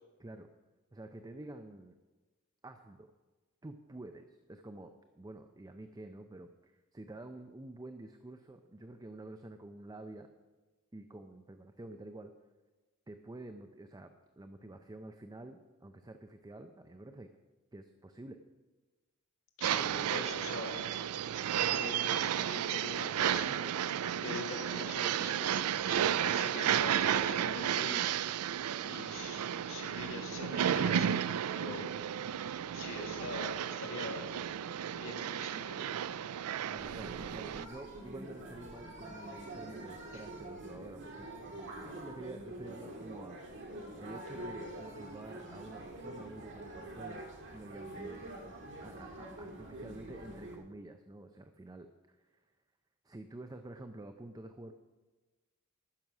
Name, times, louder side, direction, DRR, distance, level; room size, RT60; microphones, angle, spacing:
voice 1, 0.9-1.9 2.6-3.1 3.6-10.3 10.9-12.3 13.1-17.3 17.7-18.4 36.7-41.3 41.7-43.4 44.0-48.3 48.8-52.4 53.0-54.7, right 2 dB, 15° right, 7 dB, 0.5 m, -49 dB
voice 2, 19.6-20.8 21.5-23.9 24.1-28.1 28.8-31.2 31.5-31.9 32.7-34.3 34.9-35.9 40.1-40.2, left 3 dB, 65° left, 1 dB, 2.0 m, -44 dB
sound 1, 19.6-37.6, right 9 dB, 75° right, 0.4 m, -33 dB
sound 2, 36.8-50.6, right 1 dB, 60° right, 2.1 m, -46 dB
14.5 x 6.3 x 6.0 m, 1.2 s
head